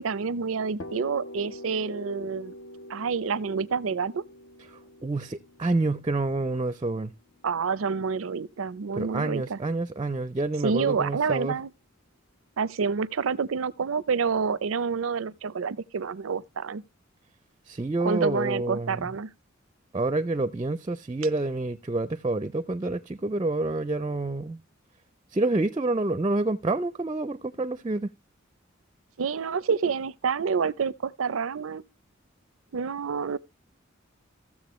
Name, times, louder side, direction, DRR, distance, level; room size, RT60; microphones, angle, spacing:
voice 1, 0.0-2.5 2.9-4.2 7.4-9.6 10.6-11.7 12.6-16.8 18.0-19.3 29.2-31.8 32.7-33.4, right 5 dB, 90° right, 0.5 m, -28 dB
sound 1, 0.8-8.5, left 1 dB, 70° left, 1.1 m, -45 dB
voice 2, 4.7-7.1 9.0-11.6 17.7-19.0 19.9-24.6 25.3-28.1, right 2 dB, 25° right, 0.4 m, -28 dB
15.0 x 7.3 x 3.0 m
head